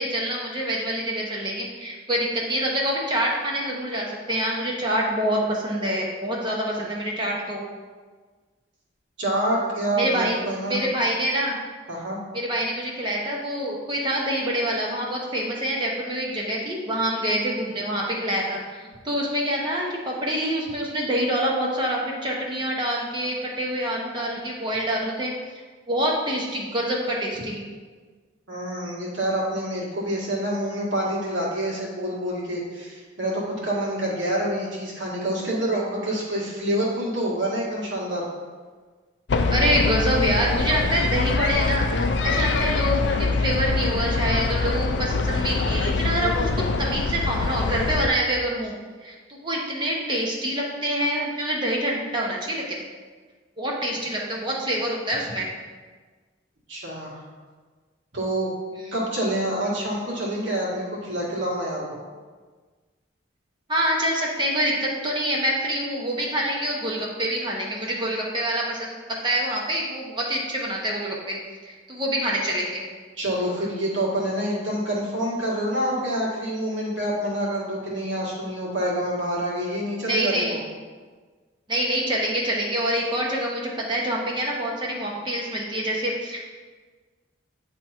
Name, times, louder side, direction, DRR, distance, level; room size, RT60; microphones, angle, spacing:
voice 1, 0.0-7.6 10.0-10.4 10.7-11.6 12.3-25.3 25.9-27.6 39.5-48.7 49.0-52.6 53.6-55.5 63.7-68.9 69.2-71.4 71.6-72.8 80.0-80.6 81.7-86.5, right 1 dB, 25° right, -2 dB, 0.9 m, -26 dB
voice 2, 9.2-10.8 11.9-12.2 28.5-38.2 53.9-54.0 56.7-57.2 58.1-58.5 58.9-62.0 73.2-80.6, right 1 dB, 70° right, -5 dB, 2.0 m, -27 dB
sound 1, 39.3-48.1, left 3 dB, 60° left, 0.4 m, -24 dB
9.2 x 3.5 x 4.4 m, 1.5 s
head